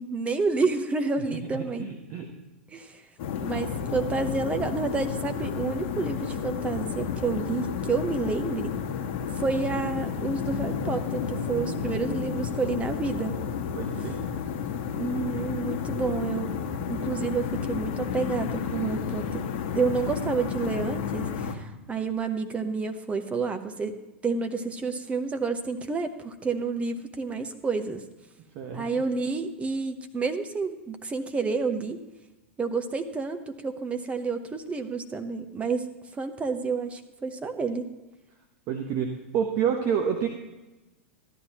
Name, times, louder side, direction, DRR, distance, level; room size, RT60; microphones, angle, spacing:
voice 1, 0.0-1.9 2.7-3.0 3.4-8.7 9.4-13.3 15.0-16.6 16.9-19.4 19.8-24.0 24.2-28.0 28.7-32.0 32.6-35.9 36.1-37.9, right 4 dB, 15° right, 7 dB, 0.9 m, -29 dB
voice 2, 1.3-2.3 11.5-12.4 13.8-14.2 20.0-20.1 28.5-28.9 38.7-40.3, right 7 dB, 45° right, 3 dB, 1.1 m, -30 dB
sound 1, 3.2-21.5, left 7 dB, 50° left, 1.3 m, -31 dB
14.0 x 11.0 x 3.0 m, 1.1 s
hypercardioid pair, 95°, 7 cm